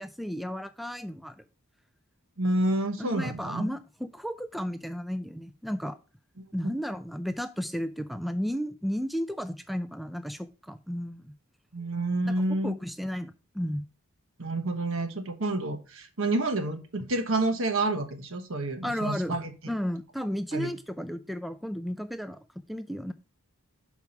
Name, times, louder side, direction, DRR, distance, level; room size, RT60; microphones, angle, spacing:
voice 1, 0.0-1.4 3.0-6.0 6.5-11.3 12.3-13.9 18.8-19.4 19.7-22.4 22.7-23.1, equal, ahead, 10 dB, 0.3 m, -33 dB
voice 2, 2.4-3.7 6.6-6.7 11.7-12.7 14.4-19.5 20.5-20.7, right 2 dB, 70° right, 7 dB, 1.2 m, -29 dB
5.4 x 4.7 x 5.8 m, 0.33 s
head